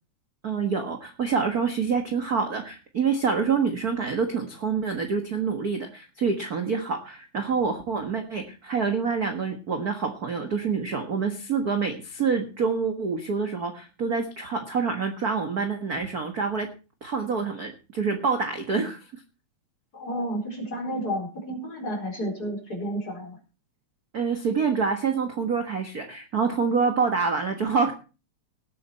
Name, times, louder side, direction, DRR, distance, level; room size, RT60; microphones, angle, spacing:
voice 1, 0.4-16.7 17.0-19.0 24.1-27.9, right 5 dB, 40° right, 5 dB, 1.5 m, -26 dB
voice 2, 19.9-23.4, equal, 30° left, 2 dB, 4.8 m, -31 dB
18.5 x 8.7 x 4.3 m, 0.33 s
omnidirectional pair, 3.6 m